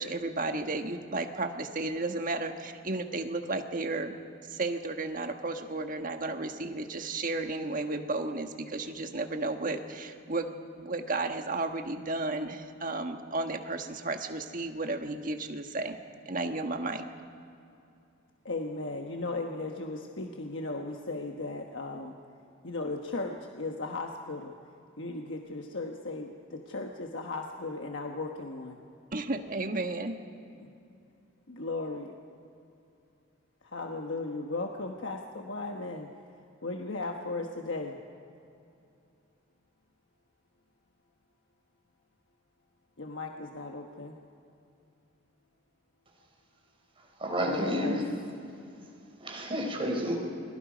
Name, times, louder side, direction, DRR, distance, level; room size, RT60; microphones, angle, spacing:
voice 1, 0.0-4.1 4.5-16.0 16.2-17.0 29.1-30.2, right 2 dB, 45° right, 5 dB, 1.4 m, -33 dB
voice 2, 18.4-22.1 22.6-24.5 25.0-28.8 30.6-30.7 31.5-32.1 33.6-36.1 36.6-38.0 43.0-44.2 47.4-48.0, left 2 dB, 65° left, 2 dB, 1.3 m, -36 dB
voice 3, 47.2-48.1 49.2-50.1, equal, 25° right, 0 dB, 4.4 m, -30 dB
29.5 x 22.0 x 5.2 m, 2.6 s
head